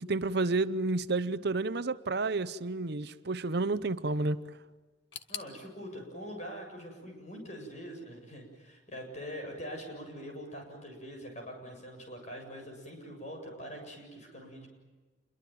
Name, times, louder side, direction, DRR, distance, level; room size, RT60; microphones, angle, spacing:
voice 1, 0.0-4.4, right 3 dB, 60° right, 0.8 m, -30 dB
sound 1, 5.1-8.0 8.2-9.1 9.4-9.5 10.3-10.4, left 9 dB, 75° left, 1.6 m, -49 dB
voice 2, 5.3-14.7, equal, 40° left, 7.6 m, -43 dB
28.0 x 22.5 x 9.3 m
head